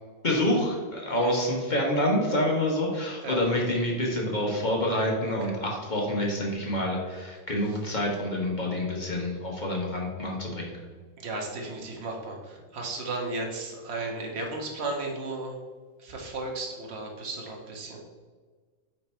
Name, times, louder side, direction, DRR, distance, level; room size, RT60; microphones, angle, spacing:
voice 1, 0.2-10.7, left 1 dB, 30° left, -1 dB, 1.0 m, -27 dB
voice 2, 11.2-15.6 16.0-18.0, right 2 dB, 40° right, 0 dB, 1.2 m, -34 dB
8.9 x 3.4 x 4.4 m, 1.5 s
omnidirectional pair, 2.1 m